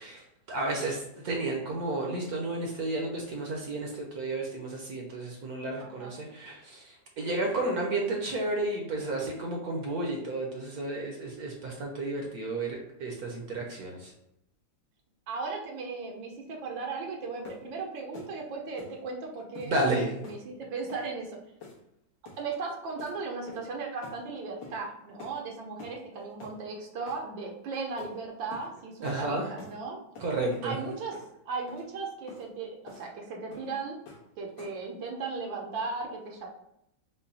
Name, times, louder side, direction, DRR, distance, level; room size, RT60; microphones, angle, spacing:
voice 1, 0.0-14.1 19.7-20.2 26.2-26.3 29.0-29.5 30.2-30.8, right 2 dB, 60° right, 0 dB, 1.1 m, -32 dB
voice 2, 5.8-6.2 15.3-21.4 22.4-30.0 30.6-31.2 31.5-34.0 34.4-36.5, right 4 dB, 75° right, 1 dB, 1.5 m, -37 dB
sound 1, 17.4-17.7 18.1-18.3 18.8-19.0 19.5-19.7 20.2-20.4 20.9-21.1 21.6-21.9 22.2-22.5 23.0-23.2 23.5-23.7 24.0-24.2 24.6-24.8 25.2-25.4 25.8-26.0 26.4-26.6 27.1-27.2 28.0-28.1 28.5-28.7 29.0-29.2 29.6-29.8 30.1-30.7 31.1-31.3 31.7-31.8 32.3-32.4 32.9-33.1 33.5-33.7 34.1-34.3 34.6-34.9, left 3 dB, 70° left, 1.9 m, -47 dB
5.5 x 2.3 x 4.0 m, 0.78 s
omnidirectional pair, 2.1 m